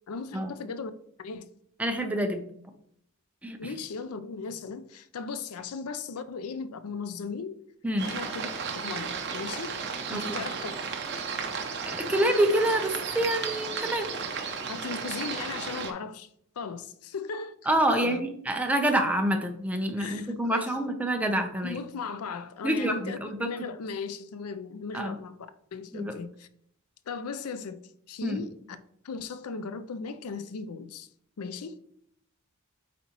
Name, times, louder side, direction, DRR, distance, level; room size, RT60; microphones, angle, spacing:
voice 1, 0.1-0.9 1.2-1.4 3.6-7.6 8.0-8.5 8.8-9.8 10.1-10.7 14.7-16.3 16.6-17.6 17.9-18.2 20.0-20.7 21.6-25.4 25.7-26.5 27.1-28.8 29.0-31.1 31.4-31.9, left 5 dB, 80° left, 0.5 m, -37 dB
voice 2, 1.8-2.5 3.4-3.8 7.8-8.1 10.1-10.2 11.8-14.1 17.7-21.8 22.6-23.5 24.9-25.1 25.9-26.2 28.2-28.4, right 1 dB, 5° right, 0.7 m, -27 dB
sound 1, 8.0-15.9, right 5 dB, 50° right, 0.9 m, -34 dB
8.4 x 4.1 x 3.0 m
head